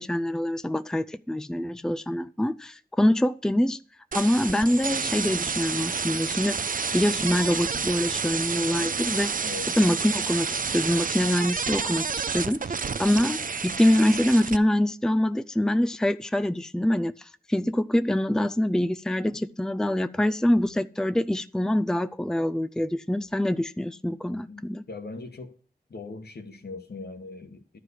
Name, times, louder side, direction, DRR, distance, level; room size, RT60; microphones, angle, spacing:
voice 1, 0.0-3.8 4.1-9.5 9.8-24.8, left 1 dB, 5° left, 0.4 m, -25 dB
sound 1, 4.1-14.6, right 5 dB, 55° right, 0.5 m, -29 dB
voice 2, 9.4-9.8 24.5-24.6 24.9-25.5 25.9-27.8, left 3 dB, 75° left, 1.4 m, -40 dB
11.5 x 4.8 x 8.2 m
wide cardioid pair, 60°, 17 cm